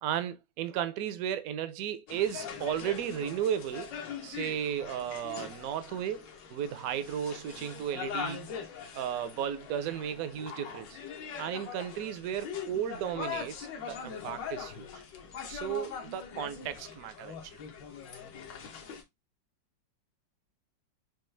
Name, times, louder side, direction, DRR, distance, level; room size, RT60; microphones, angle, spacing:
voice 1, 0.0-3.9 4.2-8.6 8.9-11.0 11.4-15.0 15.5-17.4, right 9 dB, 70° right, 0.8 m, -34 dB
sound 1, 2.1-19.0, left 7 dB, 75° left, 1.6 m, -42 dB
6.1 x 2.4 x 3.1 m
omnidirectional pair, 2.0 m